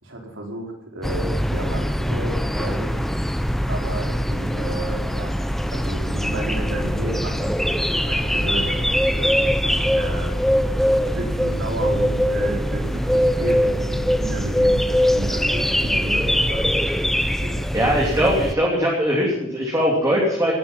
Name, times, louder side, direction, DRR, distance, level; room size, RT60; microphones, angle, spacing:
voice 1, 0.0-3.0 3.7-5.3 5.7-10.4 11.0-17.6, right 1 dB, 85° right, 0 dB, 4.4 m, -33 dB
sound 1, 1.0-18.5, equal, ahead, 0.7 m, -22 dB
voice 2, 17.7-20.5, equal, 15° right, -3 dB, 3.1 m, -20 dB
18.0 x 11.5 x 5.7 m, 0.89 s
head